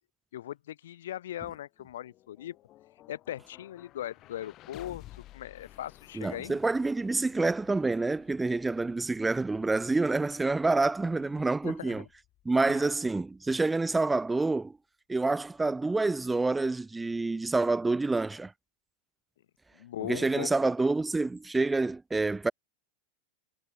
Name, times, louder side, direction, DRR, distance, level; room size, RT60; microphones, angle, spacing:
voice 1, 0.3-2.6 3.1-6.6 11.6-12.1 12.7-12.8 19.7-20.6, left 12 dB, 60° left, 2.1 m, -39 dB
sound 1, 1.7-13.8, left 15 dB, 35° left, 3.6 m, -55 dB
voice 2, 6.1-12.0 12.4-14.8 15.1-18.5 20.0-22.5, right 3 dB, 10° right, 0.9 m, -27 dB
figure-of-eight pair, 90°, 0 cm